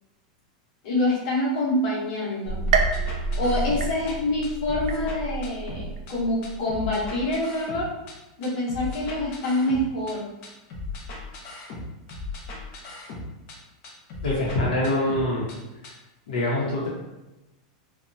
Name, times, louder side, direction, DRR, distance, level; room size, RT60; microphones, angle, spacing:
voice 1, 0.8-2.7 3.4-7.9 8.4-10.3, left 1 dB, 55° left, -6 dB, 1.0 m, -26 dB
sound 1, 2.4-7.4, right 2 dB, 10° right, 0.9 m, -32 dB
sound 2, 2.7-4.1 4.4-6.1 6.4-8.1 8.4-10.1 10.4-13.6 13.8-15.6 15.8-15.9, left 3 dB, 40° left, 0.5 m, -37 dB
sound 3, 2.7-4.4 4.9-5.5 6.0-6.1 7.0-7.1, right 6 dB, 80° right, 0.4 m, -29 dB
voice 2, 14.2-15.4 16.3-16.9, left 1 dB, 80° left, -6 dB, 0.8 m, -24 dB
2.8 x 2.1 x 2.5 m, 1.0 s
supercardioid pair, 170°, 4 cm